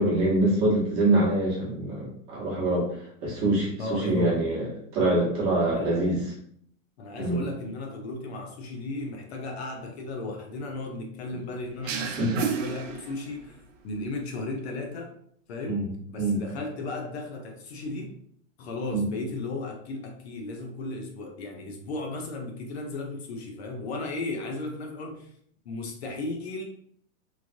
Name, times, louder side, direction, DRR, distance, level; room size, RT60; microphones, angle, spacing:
voice 1, 0.0-6.2 7.2-7.4 11.8-12.4 15.7-15.8 16.2-16.4 18.9-19.0, right 1 dB, 30° right, -5 dB, 1.0 m, -25 dB
voice 2, 3.8-4.3 5.7-6.1 7.0-13.6 13.8-15.1 15.5-15.8 16.1-18.1 18.6-25.3 25.7-26.6, left 2 dB, 55° left, 2 dB, 0.5 m, -35 dB
sound 1, 11.9-13.6, right 7 dB, 70° right, 0.6 m, -32 dB
3.1 x 2.4 x 2.5 m, 0.65 s
supercardioid pair, 175°, 40 cm